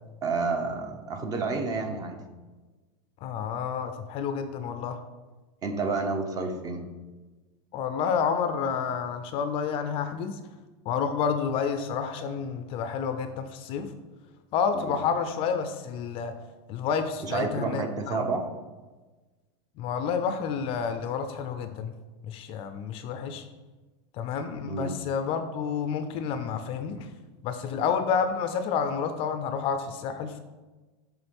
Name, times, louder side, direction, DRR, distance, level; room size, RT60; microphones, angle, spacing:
voice 1, 0.2-2.2 5.6-6.8 14.9-15.0 17.2-18.5 24.7-25.0 26.9-27.0, right 4 dB, 25° right, 5 dB, 0.8 m, -30 dB
voice 2, 3.2-5.0 7.7-10.4 10.9-13.9 14.5-16.3 16.7-18.2 19.8-21.9 22.2-23.4 24.2-27.1 27.4-30.4, left 6 dB, 35° left, 9 dB, 0.5 m, -29 dB
7.0 x 3.8 x 5.3 m, 1.2 s
supercardioid pair, 150°, 16 cm